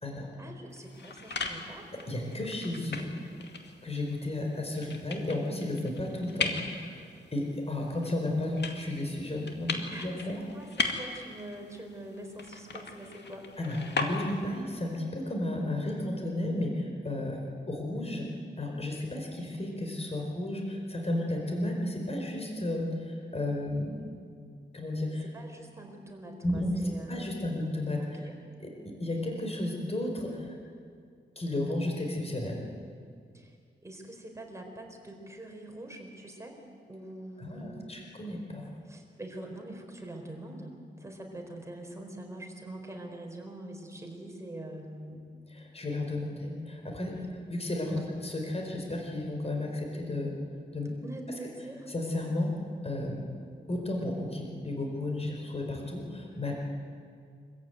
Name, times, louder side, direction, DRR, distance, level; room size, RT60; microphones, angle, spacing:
voice 1, 0.4-1.9 9.9-13.5 25.2-27.5 28.0-28.3 33.3-33.5 33.8-36.6 36.9-37.9 38.8-45.2 47.9-48.1 51.0-51.9, right 1 dB, 15° right, 2 dB, 4.5 m, -44 dB
sound 1, 0.7-14.6, left 4 dB, 70° left, 2.2 m, -38 dB
voice 2, 2.1-3.1 3.8-7.0 7.3-10.4 13.6-17.4 17.7-18.3 18.6-23.9 24.7-25.3 26.4-28.3 28.6-30.5 31.4-32.6 37.4-38.7 45.5-50.3 50.7-50.9 51.9-52.5 52.8-53.2 53.7-56.5, left 1 dB, 35° left, 1 dB, 4.6 m, -33 dB
25.0 x 15.0 x 9.4 m, 2.2 s
wide cardioid pair, 100°, 19 cm